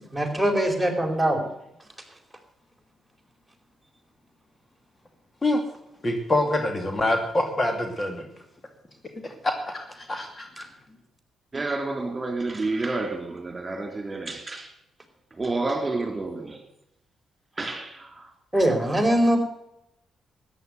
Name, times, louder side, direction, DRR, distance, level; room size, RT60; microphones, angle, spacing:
voice 1, 0.0-1.5 18.5-19.4, right 1 dB, 5° right, 4.5 m, -22 dB
voice 2, 6.0-8.3 9.4-10.7, left 1 dB, 30° left, 2.6 m, -25 dB
voice 3, 11.5-14.7 15.4-16.6 17.5-18.3, right 3 dB, 30° right, 3.5 m, -30 dB
14.0 x 9.9 x 7.9 m
hypercardioid pair, 40°, 0 cm